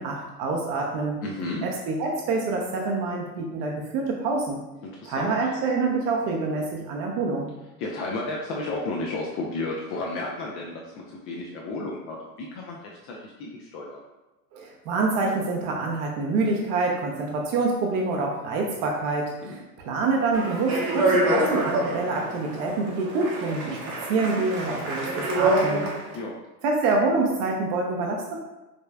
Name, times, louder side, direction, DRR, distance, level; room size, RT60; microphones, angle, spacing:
voice 1, 0.0-1.2 1.6-4.6 5.0-7.5 14.5-23.8 24.1-25.9 26.6-28.4, right 3 dB, 40° right, 0 dB, 0.7 m, -26 dB
voice 2, 1.2-1.6 4.8-5.3 7.8-14.0 19.4-19.6 26.1-26.3, left 2 dB, 30° left, -2 dB, 0.4 m, -33 dB
Speech, 20.3-26.2, right 1 dB, 55° right, 1.1 m, -26 dB
5.1 x 3.1 x 2.3 m, 1.1 s
figure-of-eight pair, 85°, 50 cm